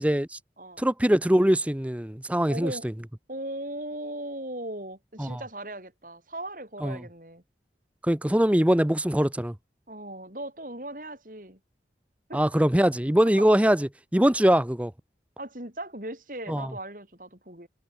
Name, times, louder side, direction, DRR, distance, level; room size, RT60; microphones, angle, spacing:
voice 1, 0.0-0.4 0.8-2.7 5.2-5.4 6.8-7.0 8.0-9.5 12.3-14.9 16.5-16.7, equal, 10° right, 0.7 m, -22 dB
voice 2, 2.5-2.9 3.3-7.4 9.9-11.6 12.3-12.5 13.4-13.5 15.4-17.7, right 1 dB, 50° right, 6.9 m, -38 dB
head